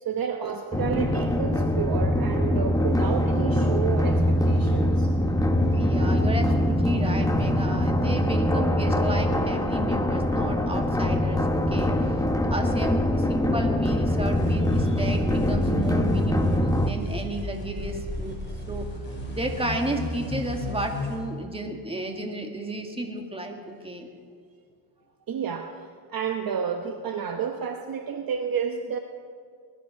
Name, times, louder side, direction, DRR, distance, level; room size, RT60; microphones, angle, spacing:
voice 1, 0.0-5.1 25.3-29.0, right 7 dB, 45° right, 5 dB, 1.0 m, -30 dB
sound 1, 0.7-16.9, left 1 dB, 5° left, 0.9 m, -23 dB
voice 2, 5.7-12.2 12.5-18.4 18.7-18.8 19.3-24.1, right 1 dB, 10° right, 3 dB, 1.8 m, -32 dB
sound 2, 14.3-21.2, left 2 dB, 25° left, 5.0 m, -34 dB
20.5 x 11.5 x 5.7 m, 2.1 s
cardioid pair, 125°, 48 cm